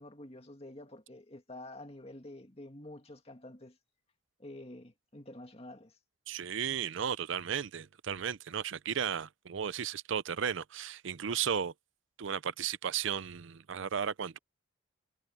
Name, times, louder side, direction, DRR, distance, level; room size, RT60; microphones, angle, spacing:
voice 1, 0.0-3.8 4.4-6.0, left 1 dB, 30° left, 2.2 m, -48 dB
voice 2, 6.3-11.7 12.2-14.4, right 8 dB, 70° right, 0.5 m, -34 dB
head